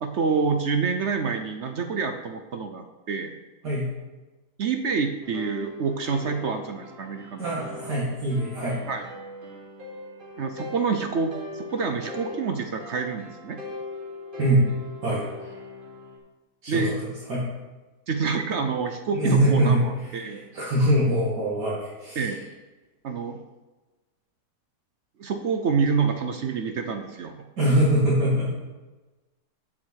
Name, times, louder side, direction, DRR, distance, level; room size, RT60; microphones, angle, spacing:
voice 1, 0.0-3.3 4.6-7.5 8.9-9.1 10.4-13.6 16.7-17.0 18.1-20.4 22.2-22.4 23.0-23.4 25.2-27.3, right 5 dB, 60° right, 6 dB, 0.7 m, -27 dB
sound 1, 5.2-16.2, left 2 dB, 30° right, 1.8 m, -40 dB
voice 2, 7.4-8.8 14.4-14.7 15.0-15.2 16.6-17.5 19.1-22.3 27.6-28.5, right 1 dB, 75° right, -8 dB, 2.7 m, -23 dB
8.6 x 7.3 x 4.7 m, 1.2 s
omnidirectional pair, 1.8 m